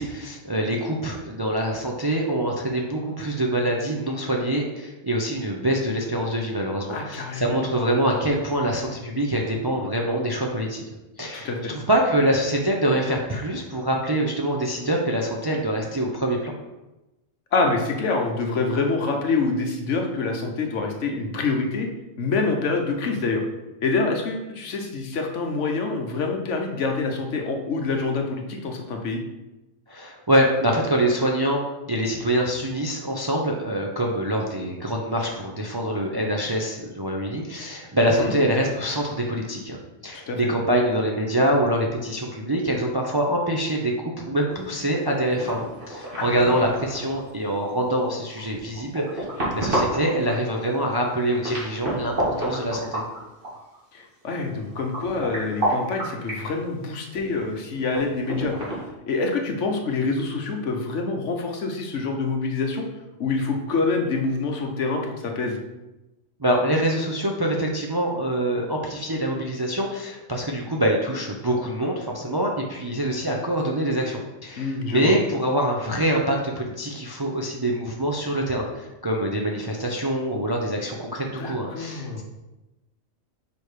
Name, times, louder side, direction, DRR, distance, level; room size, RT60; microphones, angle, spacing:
voice 1, 0.0-10.8 11.2-16.6 29.9-39.8 40.0-49.2 49.5-53.0 66.4-82.2, right 1 dB, 30° right, 0 dB, 0.5 m, -25 dB
voice 2, 6.9-7.7 11.3-11.7 17.5-21.9 22.2-23.4 23.8-29.2 38.2-38.3 40.3-40.5 46.2-46.6 53.9-58.7 59.1-62.8 63.2-65.6 74.6-75.1 81.4-82.2, left 3 dB, 70° left, 3 dB, 1.2 m, -26 dB
sound 1, 44.5-44.9 45.3-47.3 48.0-50.4 51.0-53.8 54.0-54.1 54.4-56.5 57.1-58.9, right 1 dB, 45° right, 2.1 m, -30 dB
5.1 x 4.7 x 4.8 m, 1.0 s
omnidirectional pair, 1.3 m